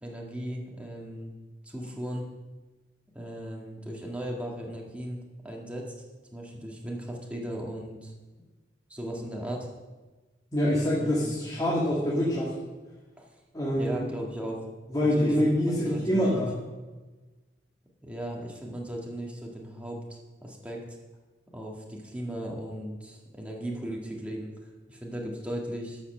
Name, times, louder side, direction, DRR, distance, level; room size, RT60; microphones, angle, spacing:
voice 1, 0.0-1.3 1.6-2.3 3.1-5.9 6.3-8.1 8.9-9.7 11.0-11.2 13.2-13.3 13.8-14.7 15.0-15.4 15.7-16.3 18.0-20.8 21.5-26.0, right 1 dB, 5° right, -2 dB, 1.8 m, -37 dB
voice 2, 10.5-12.5 13.5-14.0 14.9-16.5, equal, 20° left, -6 dB, 2.0 m, -25 dB
12.5 x 5.7 x 6.5 m, 1.2 s
head